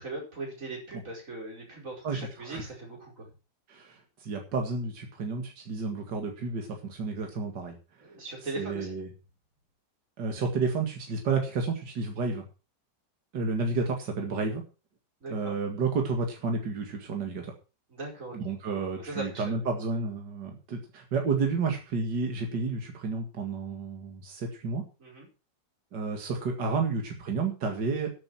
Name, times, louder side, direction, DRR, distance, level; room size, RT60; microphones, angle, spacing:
voice 1, 0.0-3.3 8.0-9.0 15.2-15.6 17.9-18.4 19.0-19.4 25.0-25.3, right 2 dB, 45° right, -2 dB, 5.5 m, -39 dB
voice 2, 2.0-2.6 3.7-7.8 8.6-9.1 10.2-12.4 13.3-14.6 15.3-17.5 18.3-24.8 25.9-28.1, right 4 dB, 75° right, 2 dB, 2.6 m, -31 dB
12.0 x 9.1 x 6.1 m, 0.33 s
omnidirectional pair, 1.9 m